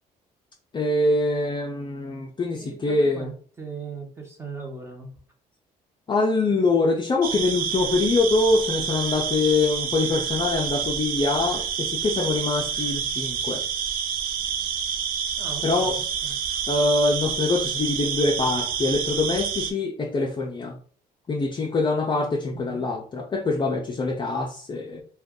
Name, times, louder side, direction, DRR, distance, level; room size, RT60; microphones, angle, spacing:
voice 1, 0.7-3.3 6.1-13.6 15.6-16.0 16.7-20.8 21.3-25.0, left 3 dB, 30° left, 1 dB, 0.5 m, -24 dB
voice 2, 2.6-5.1 15.4-16.3 22.7-22.9, right 4 dB, 15° right, 1 dB, 0.9 m, -39 dB
sound 1, 7.2-19.7, right 7 dB, 60° right, 0.4 m, -28 dB
2.5 x 2.3 x 3.6 m, 0.44 s
cardioid pair, 110°, 17 cm